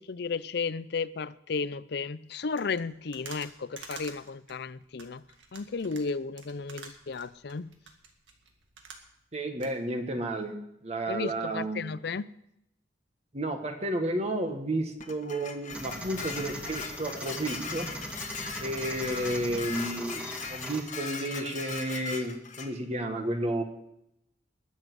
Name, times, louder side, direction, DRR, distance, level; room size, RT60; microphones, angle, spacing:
voice 1, 0.0-5.2 5.5-7.7 11.1-12.3, left 4 dB, 60° left, 17 dB, 0.5 m, -34 dB
sound 1, 2.5-9.3 9.6-9.7, right 5 dB, 80° right, 2.1 m, -48 dB
voice 2, 9.3-10.6 10.8-11.8 13.3-17.9 18.6-23.6, right 1 dB, 35° right, 4 dB, 1.6 m, -32 dB
Dishes pots and pans, 15.0-22.7, left 5 dB, 40° left, 1.5 m, -39 dB
sound 2, 15.7-20.8, equal, 5° right, 2.0 m, -40 dB
21.0 x 7.4 x 6.2 m, 0.80 s
head